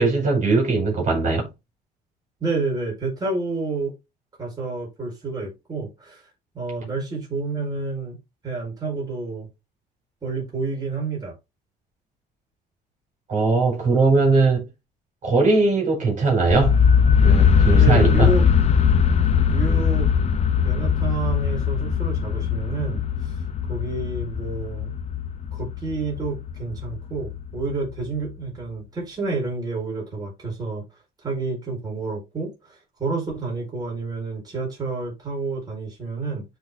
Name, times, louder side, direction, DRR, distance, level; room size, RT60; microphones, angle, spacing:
voice 1, 0.0-1.5 13.3-14.6 15.2-16.8 17.2-18.3, right 3 dB, 50° right, 4.8 m, -20 dB
voice 2, 2.4-3.9 4.4-6.2 6.5-8.2 8.4-9.5 10.2-11.3 17.8-18.5 19.5-20.1 20.6-23.4 23.7-24.9 25.5-30.8 31.2-36.4, right 3 dB, 25° right, 4.7 m, -29 dB
sound 1, 16.5-28.3, left 7 dB, 40° left, 0.8 m, -20 dB
12.0 x 4.2 x 2.8 m
cardioid pair, 110°, 17 cm